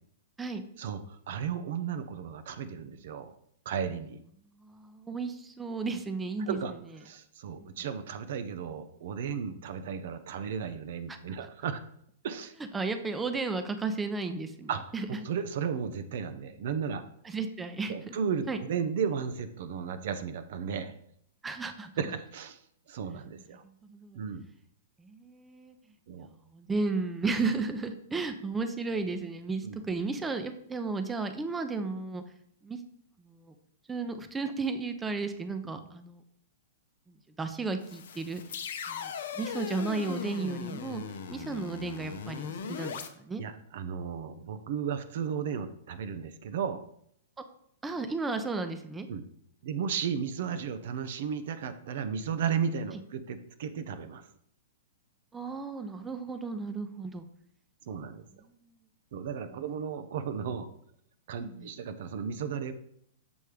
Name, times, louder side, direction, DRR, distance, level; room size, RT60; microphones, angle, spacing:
voice 1, 0.8-3.3 3.7-4.2 6.4-6.7 7.0-11.8 12.2-12.5 14.7-14.9 15.2-17.0 17.9-20.9 22.0-22.6 22.9-23.6 24.1-24.4 26.1-26.3 29.6-29.8 35.8-35.9 43.4-46.8 49.1-49.2 49.6-54.3 57.9-58.2 59.1-60.7 61.3-62.7, right 7 dB, 60° right, 10 dB, 0.5 m, -34 dB
voice 2, 4.6-6.6 7.6-7.7 11.1-11.2 12.7-15.1 17.2-18.2 18.5-18.6 21.4-21.9 23.8-24.2 25.0-25.7 26.5-32.2 32.6-32.8 33.2-33.5 33.9-36.2 37.4-38.4 38.9-41.0 41.3-43.4 47.8-49.1 55.3-57.3 61.4-61.7, right 3 dB, 15° right, 8 dB, 0.6 m, -34 dB
sound 1, 37.8-43.1, left 6 dB, 65° left, 0.6 m, -39 dB
7.0 x 3.2 x 4.9 m, 0.69 s
hypercardioid pair, 110°, 0 cm